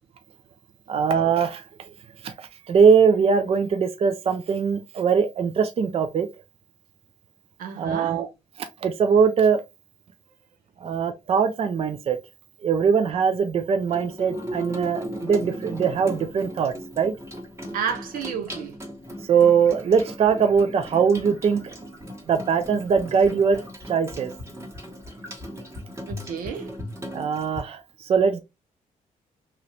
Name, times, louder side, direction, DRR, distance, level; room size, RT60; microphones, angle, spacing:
voice 1, 0.9-1.6 2.2-6.3 7.8-8.3 8.8-9.6 10.8-12.2 12.6-17.1 19.3-21.7 22.3-23.6 23.9-24.3 27.1-28.4, right 6 dB, 45° right, 0.5 m, -21 dB
voice 2, 7.6-8.2 17.7-18.7 26.1-26.7, right 7 dB, 80° right, 0.8 m, -31 dB
Water tap faucet / Sink (filling or washing), 13.8-27.6, equal, 20° right, 1.2 m, -37 dB
3.0 x 2.4 x 3.1 m
cardioid pair, 100°, 14 cm